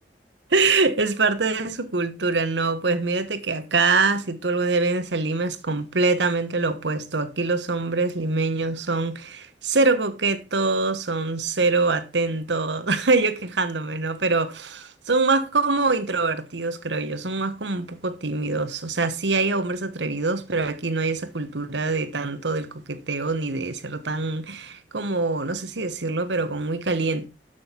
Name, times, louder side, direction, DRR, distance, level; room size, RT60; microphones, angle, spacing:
voice 1, 0.5-14.6 15.1-27.3, right 3 dB, 80° right, 1.2 m, -24 dB
13.0 x 6.3 x 4.5 m
head